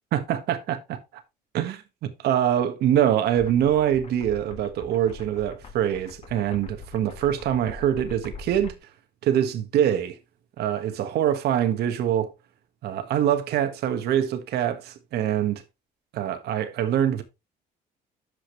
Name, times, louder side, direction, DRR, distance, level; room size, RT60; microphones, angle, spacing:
voice 1, 0.1-1.2 1.5-1.8 2.2-8.7 9.2-10.2 10.6-12.3 12.8-15.6 16.1-17.2, right 10 dB, 75° right, 1.4 m, -24 dB
sound 1, 3.4-8.8, left 4 dB, 35° left, 1.5 m, -43 dB
12.5 x 5.1 x 3.2 m
cardioid pair, 110°, 17 cm